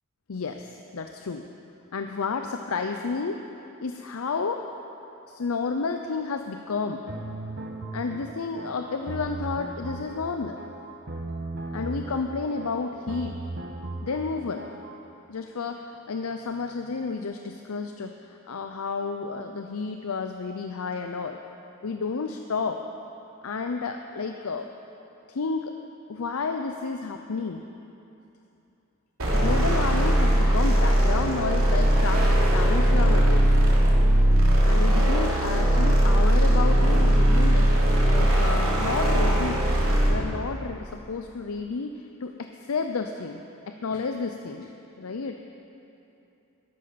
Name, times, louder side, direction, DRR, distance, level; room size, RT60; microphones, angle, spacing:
voice 1, 0.3-1.5 1.9-3.4 3.8-4.6 5.3-7.0 7.9-10.6 11.7-13.4 14.0-14.7 15.3-21.4 21.8-22.8 23.4-24.7 25.3-25.7 26.1-27.6 29.3-33.5 34.6-37.7 38.0-39.6 40.1-43.4 43.7-45.4, left 4 dB, 80° left, 5 dB, 0.6 m, -31 dB
sound 1, 7.1-15.0, right 2 dB, 55° right, 1.1 m, -37 dB
sound 2, 29.2-40.3, right 1 dB, 80° right, 3.1 m, -20 dB
13.0 x 12.0 x 5.8 m, 2.8 s
head